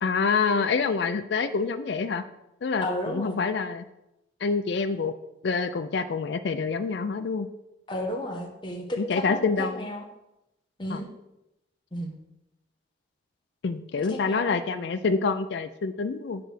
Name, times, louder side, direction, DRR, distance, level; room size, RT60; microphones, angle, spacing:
voice 1, 0.0-2.2 2.6-3.8 4.4-5.1 5.4-7.5 9.0-9.8 10.9-11.0 13.6-16.4, left 4 dB, 65° left, 10 dB, 0.4 m, -27 dB
voice 2, 2.8-3.4 7.9-10.1 10.8-11.1 11.9-12.1 14.0-14.8, left 1 dB, 25° left, 1 dB, 0.9 m, -33 dB
8.6 x 3.3 x 6.3 m, 0.91 s
head